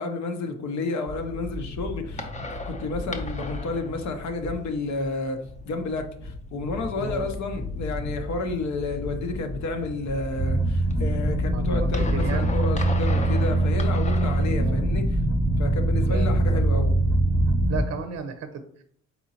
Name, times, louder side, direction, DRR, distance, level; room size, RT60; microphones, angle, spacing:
voice 1, 0.0-5.4 5.6-15.2 15.6-16.9, left 3 dB, 65° left, 5 dB, 0.8 m, -31 dB
sound 1, 1.1-14.5, left 2 dB, 25° left, 0.7 m, -36 dB
sound 2, 10.4-17.8, right 1 dB, 15° right, 0.9 m, -23 dB
voice 2, 11.5-12.5 14.6-14.8 16.0-16.6 17.7-18.8, right 6 dB, 55° right, 7 dB, 0.6 m, -34 dB
4.3 x 3.7 x 2.8 m, 0.63 s
cardioid pair, 90°, 30 cm